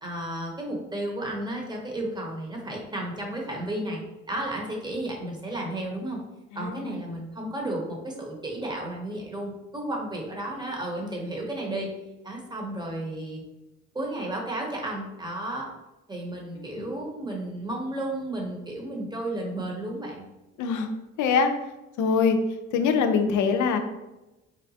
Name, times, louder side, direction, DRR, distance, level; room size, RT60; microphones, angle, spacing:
voice 1, 0.0-4.0 4.3-6.2 6.5-11.9 12.2-13.4 13.9-15.7 16.1-20.2, right 1 dB, 15° right, -1 dB, 0.8 m, -33 dB
voice 2, 6.5-7.0 16.5-16.9 20.6-20.9 21.2-21.5 22.0-22.4 22.7-23.8, left 5 dB, 80° left, 7 dB, 0.5 m, -24 dB
4.0 x 2.1 x 2.7 m, 1.0 s
cardioid pair, 90°, 30 cm